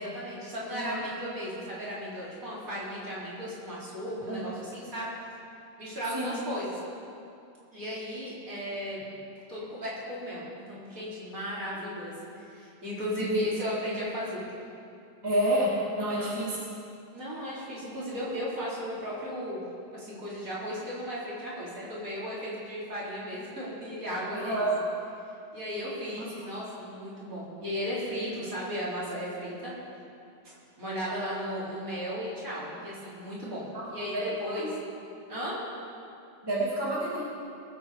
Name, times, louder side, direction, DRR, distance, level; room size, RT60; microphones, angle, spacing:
voice 1, 0.0-5.1 5.8-6.8 7.7-9.0 9.5-14.4 16.0-16.4 17.1-19.7 19.9-24.7 25.5-29.7 30.8-34.8 35.3-35.6, equal, 50° right, -8 dB, 4.4 m, -35 dB
voice 2, 0.7-1.0 4.3-4.4 6.1-6.4 13.2-13.5 15.2-15.7 16.0-16.5 24.3-24.7 33.7-33.8 34.1-34.6 36.4-37.2, right 1 dB, 15° right, -7 dB, 2.6 m, -29 dB
22.5 x 8.3 x 5.0 m, 2.6 s
omnidirectional pair, 1.9 m